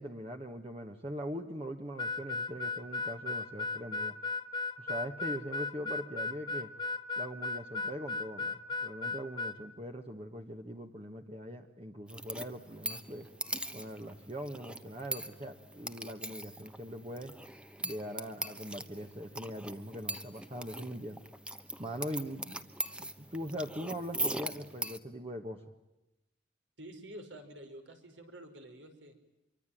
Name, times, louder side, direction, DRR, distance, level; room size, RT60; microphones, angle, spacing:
voice 1, 0.0-4.1 4.8-6.7 7.2-13.3 13.7-17.3 17.8-21.2 21.8-22.6 23.0-25.6, equal, 30° right, 4 dB, 1.4 m, -41 dB
Harmonica, 2.0-9.6, left 3 dB, 25° left, 0.9 m, -36 dB
sound 1, 12.1-25.0, right 1 dB, 5° right, 1.0 m, -41 dB
voice 2, 26.8-29.1, right 1 dB, 80° right, 6 dB, 5.2 m, -49 dB
26.0 x 24.0 x 9.2 m, 0.92 s
head